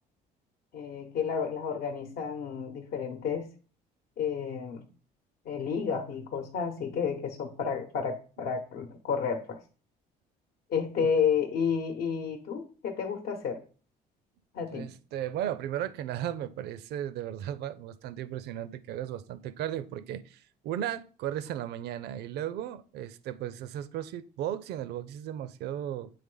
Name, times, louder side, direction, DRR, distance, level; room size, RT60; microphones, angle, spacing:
voice 1, 0.7-3.5 4.2-4.9 5.4-9.6 10.7-13.6 14.5-14.9, left 6 dB, 70° left, 0.9 m, -31 dB
voice 2, 14.7-26.1, right 11 dB, 75° right, 0.5 m, -35 dB
8.6 x 3.3 x 3.8 m
cardioid pair, 110°, 17 cm